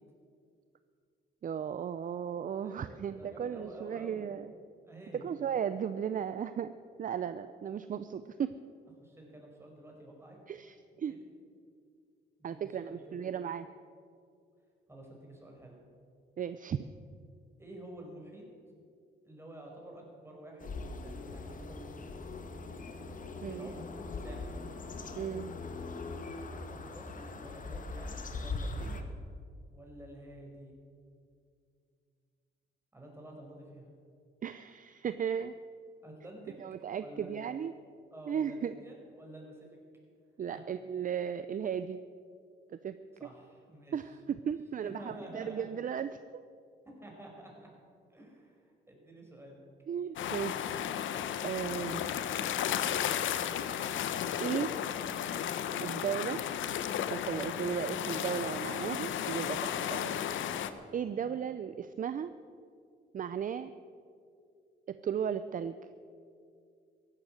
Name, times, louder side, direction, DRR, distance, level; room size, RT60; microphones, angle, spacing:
voice 1, 1.4-4.5 5.1-6.7 7.0-8.5 10.5-11.1 12.4-13.7 16.4-16.9 23.4-23.7 25.2-25.5 28.8-29.0 34.4-35.5 36.6-37.7 38.3-38.7 40.4-42.0 42.8-43.0 43.9-46.4 49.9-51.1 51.4-52.1 54.4-54.7 55.8-56.4 57.1-60.2 60.9-62.3 63.1-63.7 64.9-65.8, right 8 dB, 45° right, 12 dB, 0.6 m, -35 dB
voice 2, 2.6-4.4 4.8-5.3 9.0-10.4 11.1-11.2 12.4-13.3 14.9-15.8 17.6-18.4 19.2-22.0 23.4-24.6 26.7-29.1 29.7-30.7 32.9-33.9 36.0-36.5 37.0-37.5 38.1-39.7 40.5-40.6 43.2-44.0 44.8-45.6 46.8-47.7 48.1-49.6 61.2-61.4, right 1 dB, 10° right, 0 dB, 5.1 m, -50 dB
sound 1, 20.6-29.0, left 3 dB, 40° left, 1.6 m, -41 dB
sound 2, 50.2-60.7, left 10 dB, 75° left, 0.9 m, -34 dB
15.0 x 11.5 x 7.7 m, 2.3 s
cardioid pair, 90°, 20 cm